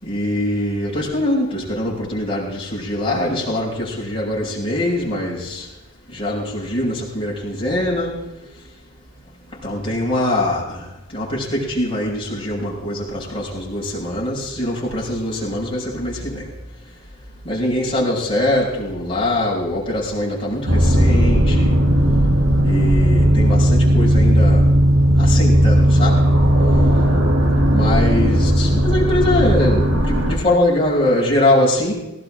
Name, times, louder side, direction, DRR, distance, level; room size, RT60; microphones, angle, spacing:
voice 1, 0.0-5.7 6.1-8.2 9.6-16.5 17.4-21.8 22.6-24.7 25.2-26.2 27.7-31.9, left 1 dB, 25° left, -4 dB, 6.0 m, -22 dB
sound 1, 20.7-30.3, equal, 70° right, 2.9 m, -15 dB
18.5 x 18.0 x 3.8 m, 0.91 s
head